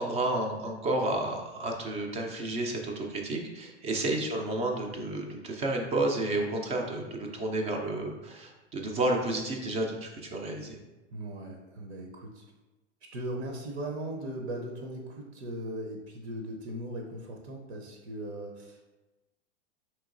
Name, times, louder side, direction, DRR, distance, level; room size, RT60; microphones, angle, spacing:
voice 1, 0.0-10.8, right 2 dB, 20° right, 1 dB, 0.4 m, -31 dB
voice 2, 11.1-12.4 13.1-18.8, right 1 dB, 70° right, 1 dB, 0.7 m, -38 dB
4.5 x 3.0 x 2.5 m, 1.1 s
hypercardioid pair, 105°, 35 cm